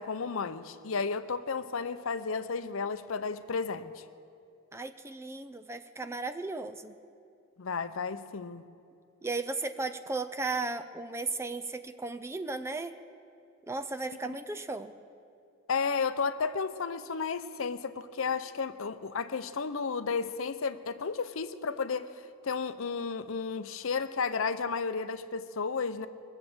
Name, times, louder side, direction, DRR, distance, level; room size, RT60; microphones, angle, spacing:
voice 1, 0.0-4.0 7.6-8.7 15.7-22.1 22.4-26.1, left 5 dB, 70° left, 0.6 m, -33 dB
voice 2, 4.7-7.0 9.2-12.9 13.7-14.9, right 3 dB, 10° right, 0.5 m, -35 dB
22.0 x 7.3 x 7.9 m
head